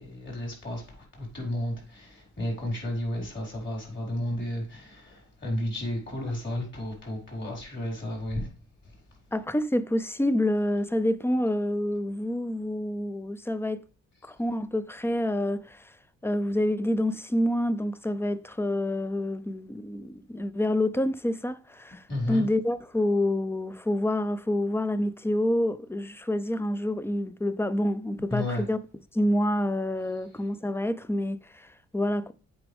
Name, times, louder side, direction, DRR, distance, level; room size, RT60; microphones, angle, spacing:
voice 1, 0.0-8.5 8.8-9.2 22.1-22.5 28.3-28.7, left 1 dB, 40° left, 4.5 m, -33 dB
voice 2, 9.3-13.8 14.2-15.9 16.2-28.8 29.1-32.3, left 1 dB, 10° left, 0.5 m, -27 dB
7.9 x 5.1 x 3.5 m
cardioid pair, 90°, 30 cm